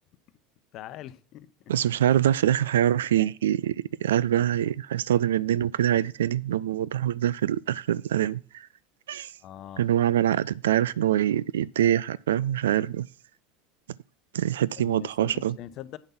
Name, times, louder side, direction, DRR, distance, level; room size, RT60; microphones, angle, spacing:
voice 1, 0.7-1.5 9.4-9.9 14.8-16.0, left 12 dB, 50° left, 0.8 m, -42 dB
voice 2, 1.7-8.4 9.1-9.3 9.8-13.1 14.3-15.5, right 11 dB, 75° right, 0.3 m, -24 dB
8.9 x 5.3 x 5.9 m
hypercardioid pair, 75°, 0 cm